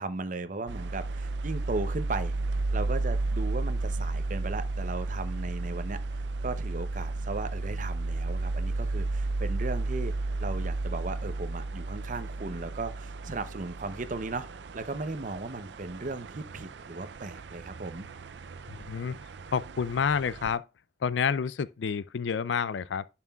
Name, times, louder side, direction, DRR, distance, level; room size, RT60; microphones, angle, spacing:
voice 1, 0.0-2.4 2.7-10.1 10.4-14.5 14.7-18.1, right 3 dB, 45° right, 0.7 m, -36 dB
sound 1, 0.7-20.6, right 2 dB, 75° right, 0.5 m, -33 dB
voice 2, 18.7-19.2 19.5-20.6 21.0-23.1, left 6 dB, 90° left, 0.4 m, -29 dB
11.0 x 5.8 x 2.4 m
head